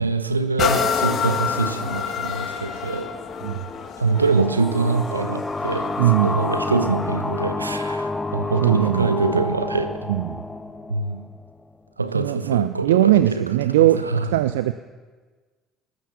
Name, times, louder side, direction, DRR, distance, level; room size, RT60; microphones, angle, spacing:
voice 1, 0.0-3.1 4.0-10.1 10.9-11.3 12.0-14.3, right 3 dB, 85° right, 0.8 m, -24 dB
sound 1, 0.6-8.2 8.8-8.9, left 7 dB, 45° left, 1.7 m, -29 dB
sound 2, 4.1-11.5, left 2 dB, 15° left, 1.0 m, -29 dB
voice 2, 6.0-6.4 8.6-9.2 10.1-10.4 12.1-14.7, right 14 dB, 70° right, 0.4 m, -20 dB
20.0 x 9.6 x 7.1 m
figure-of-eight pair, 55°, 0 cm